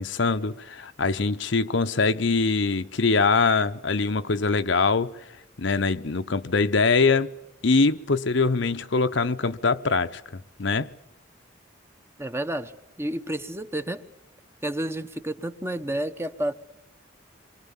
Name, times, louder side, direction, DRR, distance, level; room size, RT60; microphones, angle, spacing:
voice 1, 0.0-5.2 5.6-7.3 7.6-10.9, left 4 dB, 65° left, 0.9 m, -23 dB
voice 2, 12.2-12.7 13.0-14.0 14.6-16.5, right 1 dB, 15° right, 1.0 m, -30 dB
27.5 x 23.5 x 7.2 m
head